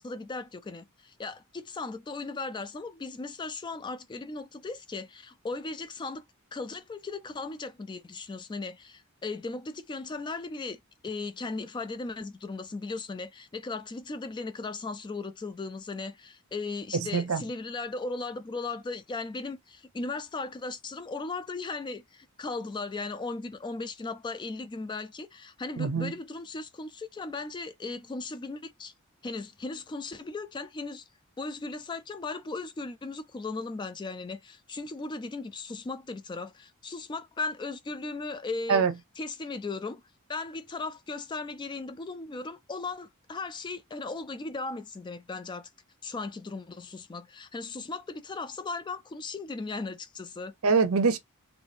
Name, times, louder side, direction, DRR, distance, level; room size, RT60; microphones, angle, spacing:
voice 1, 0.0-6.2 6.5-28.9 29.2-31.1 31.4-38.8 39.2-40.0 40.3-45.7 46.0-50.5, left 3 dB, 20° left, 0.3 m, -37 dB
voice 2, 16.9-17.4 25.8-26.1 38.7-38.9 50.6-51.2, right 5 dB, 70° right, 0.6 m, -24 dB
3.1 x 2.6 x 3.4 m
head